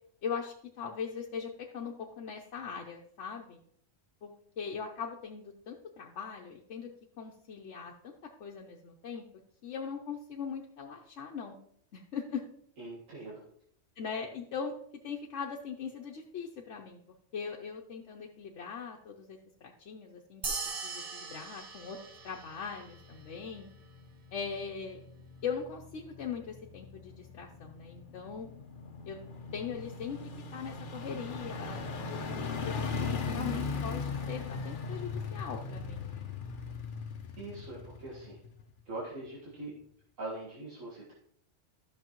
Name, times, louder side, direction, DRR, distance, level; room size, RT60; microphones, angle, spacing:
voice 1, 0.2-3.6 4.2-6.9 7.2-9.3 9.6-11.6 11.9-12.4 13.1-13.2 14.0-14.7 15.0-17.0 17.3-20.4 20.8-22.0 22.2-23.7 24.3-25.0 25.4-28.5 29.1-29.2 29.5-36.3, left 6 dB, 65° left, -1 dB, 1.0 m, -40 dB
voice 2, 12.8-13.4 37.4-38.4 38.9-39.7 40.2-41.1, right 2 dB, 85° right, -6 dB, 2.1 m, -42 dB
sound 1, 20.4-23.2, right 4 dB, 40° right, 0.6 m, -40 dB
sound 2, 22.4-38.9 39.3-39.4, left 4 dB, 50° left, 0.8 m, -39 dB
12.5 x 6.3 x 3.0 m, 0.67 s
omnidirectional pair, 1.3 m